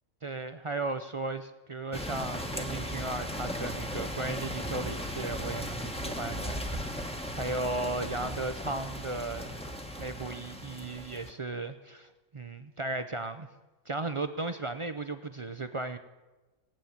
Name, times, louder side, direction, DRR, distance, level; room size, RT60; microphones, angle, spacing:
voice 1, 0.2-9.6 10.0-13.5 13.9-16.0, right 2 dB, 50° right, 9 dB, 0.3 m, -36 dB
sound 1, 1.9-11.3, equal, 5° left, 0.9 m, -37 dB
18.0 x 9.0 x 7.2 m, 1.1 s
omnidirectional pair, 1.5 m